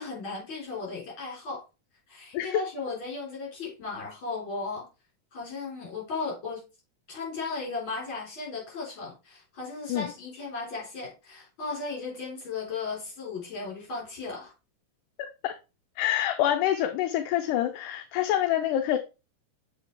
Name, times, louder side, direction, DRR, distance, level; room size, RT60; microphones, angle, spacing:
voice 1, 0.0-1.6 2.1-4.9 5.3-6.6 7.1-14.5, left 4 dB, 40° left, 4.3 m, -36 dB
voice 2, 16.0-19.0, left 12 dB, 80° left, 2.0 m, -26 dB
7.3 x 4.9 x 3.3 m
omnidirectional pair, 3.8 m